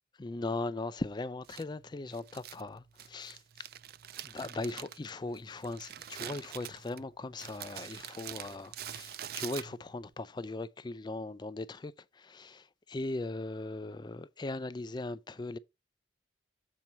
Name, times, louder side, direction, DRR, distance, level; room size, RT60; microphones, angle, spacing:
voice 1, 0.2-3.7 4.3-15.6, left 2 dB, 25° left, 0.4 m, -39 dB
Crumpling crinkling, 1.4-10.1, right 10 dB, 55° right, 0.4 m, -45 dB
7.2 x 4.5 x 5.2 m
head